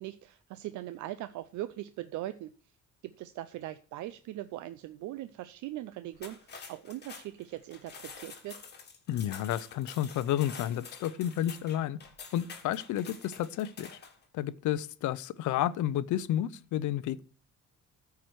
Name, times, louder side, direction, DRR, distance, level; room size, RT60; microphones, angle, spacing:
voice 1, 0.0-2.5 3.0-8.6, right 14 dB, 75° right, 0.5 m, -40 dB
sound 1, 6.1-14.2, left 5 dB, 35° left, 1.5 m, -48 dB
voice 2, 9.1-12.0 12.3-13.9 14.3-17.2, left 12 dB, 75° left, 0.5 m, -31 dB
13.5 x 4.7 x 4.6 m
cardioid pair, 145°, 30 cm